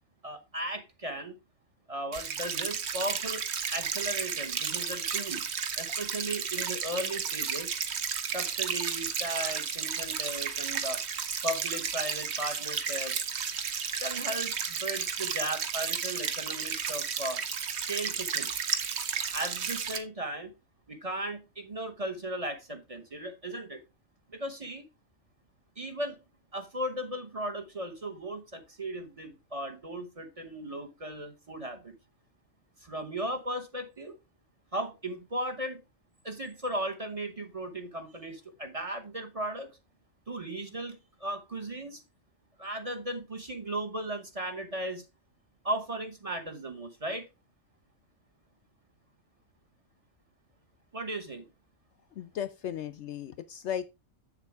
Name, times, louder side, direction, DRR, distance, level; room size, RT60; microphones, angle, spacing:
voice 1, 0.2-1.4 1.9-3.4 3.7-5.4 5.8-7.7 8.3-11.0 11.4-13.1 14.0-17.4 17.7-18.5 19.3-20.5 20.9-23.8 24.3-24.8 25.8-26.2 26.5-31.9 32.8-34.2 34.7-35.8 36.2-39.7 40.3-42.0 42.6-45.0 45.6-47.3 50.9-51.4, right 1 dB, 30° right, 1.1 m, -36 dB
sound 1, 2.1-20.0, right 7 dB, 55° right, 1.1 m, -33 dB
voice 2, 52.2-53.8, left 9 dB, 65° left, 0.8 m, -35 dB
7.4 x 7.3 x 3.4 m
omnidirectional pair, 1.4 m